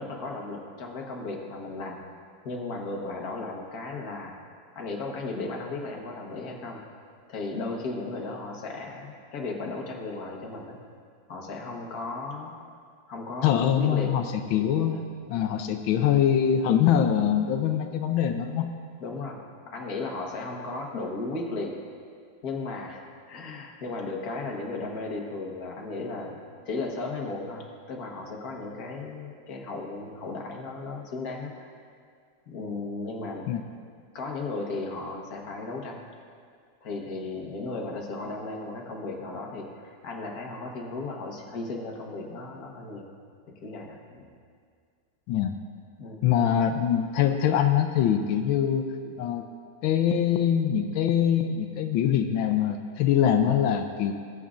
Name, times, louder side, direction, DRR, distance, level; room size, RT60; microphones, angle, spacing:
voice 1, 0.0-2.0 2.4-4.4 4.7-6.8 7.3-10.8 11.3-12.5 13.1-14.1 14.9-15.0 19.0-19.4 19.7-21.7 22.4-23.0 23.3-26.4 26.6-31.7 32.5-33.4 34.1-36.0 36.8-43.0 43.6-44.3 46.0-46.2, left 3 dB, 55° left, 0 dB, 1.6 m, -35 dB
voice 2, 13.4-15.0 15.3-18.7 33.5-33.6 45.3-45.5 46.2-49.5 49.8-54.1, left 9 dB, 90° left, 6 dB, 1.4 m, -23 dB
19.5 x 8.3 x 2.5 m, 2.2 s
omnidirectional pair, 2.1 m